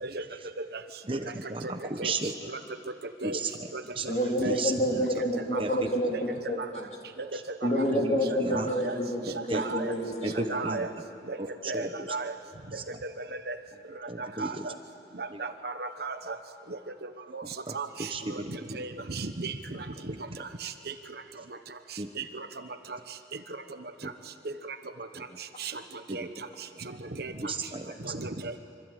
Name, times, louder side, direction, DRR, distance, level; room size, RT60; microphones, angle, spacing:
voice 1, 1.1-2.3 3.2-3.5 4.0-4.1 4.5-5.0 5.6-5.7 7.9-8.0 8.4-8.7 9.5-9.6 10.2-10.8 11.7-11.9 14.1-14.5 18.1-18.5 22.0-22.1 24.0-24.1 27.4-27.9, right 3 dB, 30° right, 6 dB, 1.1 m, -33 dB
voice 2, 4.1-6.9 7.6-10.8, equal, 35° left, 0 dB, 3.7 m, -29 dB
voice 3, 8.3-8.9 9.3-9.9 10.5-10.9 11.3-11.4 11.7-12.3 13.2-13.6 14.2-14.7 15.2-16.4 17.3-17.4 17.7-19.5 20.1-20.2 20.6-20.7 22.2-22.5 24.4-24.5 25.6-25.7 26.1-26.3 27.2-27.5 28.0-28.6, right 3 dB, 55° right, 8 dB, 1.1 m, -35 dB
25.5 x 25.5 x 9.1 m, 2.9 s
head